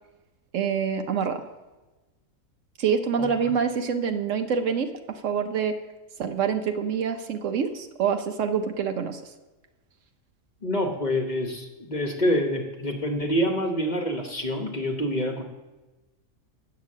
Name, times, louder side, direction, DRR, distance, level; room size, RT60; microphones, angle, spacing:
voice 1, 0.5-1.4 2.8-5.8 6.2-9.3, right 6 dB, 65° right, 7 dB, 1.0 m, -26 dB
voice 2, 10.6-15.4, equal, 35° left, 2 dB, 1.0 m, -26 dB
8.1 x 6.7 x 7.4 m, 1.1 s
omnidirectional pair, 1.5 m